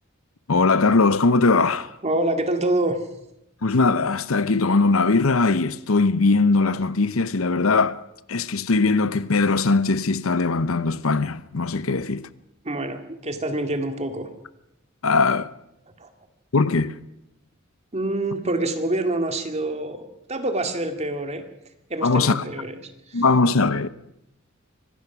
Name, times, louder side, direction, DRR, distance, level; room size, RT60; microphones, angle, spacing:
voice 1, 0.5-1.9 3.6-8.0 8.3-12.3 15.0-15.5 16.5-16.9 22.0-22.4 23.1-23.9, left 3 dB, 85° left, 0.8 m, -20 dB
voice 2, 2.0-3.0 11.9-12.0 12.6-14.3 16.0-16.1 17.9-21.4 21.9-23.2, right 1 dB, 35° right, 2.2 m, -26 dB
25.0 x 18.0 x 6.1 m
head